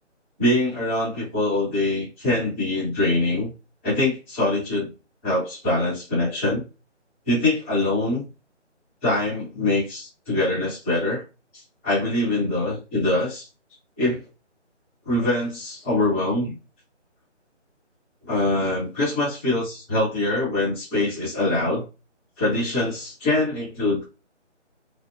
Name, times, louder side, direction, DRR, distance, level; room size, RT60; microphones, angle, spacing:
voice 1, 0.4-3.5 3.8-4.9 5.2-6.6 7.3-8.2 9.0-11.2 11.8-13.5 14.0-14.2 15.0-16.6 18.3-21.8 22.4-24.0, left 2 dB, 10° left, -13 dB, 1.1 m, -23 dB
3.1 x 2.1 x 2.4 m, 0.29 s
figure-of-eight pair, 175°, 36 cm